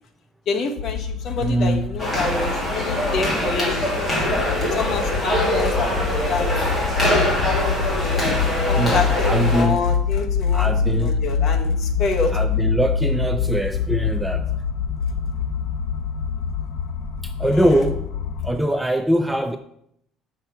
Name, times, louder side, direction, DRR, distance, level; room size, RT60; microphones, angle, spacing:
voice 1, 0.5-4.2 4.7-6.7 7.9-12.3 17.5-17.8, left 3 dB, 40° left, 4 dB, 1.0 m, -28 dB
sound 1, 0.8-18.5, left 5 dB, 55° left, 0.6 m, -25 dB
voice 2, 1.3-1.9 8.8-9.8 10.5-11.3 12.3-14.5 17.2-18.1 18.4-19.6, equal, 5° right, 7 dB, 0.3 m, -22 dB
sound 2, 2.0-9.6, equal, 15° left, 2.5 m, -23 dB
6.7 x 5.8 x 5.6 m, 0.72 s
cardioid pair, 170°, 0 cm